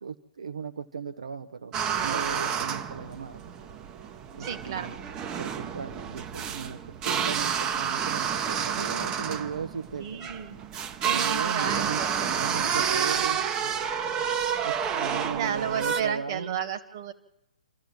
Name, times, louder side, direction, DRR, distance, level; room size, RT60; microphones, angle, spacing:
voice 1, 0.0-3.4 4.3-5.0 5.4-10.3 11.1-13.7 14.6-16.6, right 6 dB, 60° right, 8 dB, 0.9 m, -37 dB
sound 1, 1.7-16.0, right 7 dB, 20° right, 0.9 m, -29 dB
voice 2, 4.4-4.9 10.0-10.6 11.0-12.3 12.6-12.8 15.3-17.1, right 8 dB, 40° right, 9 dB, 1.8 m, -33 dB
27.5 x 14.0 x 7.3 m, 0.85 s
figure-of-eight pair, 120°, 4 cm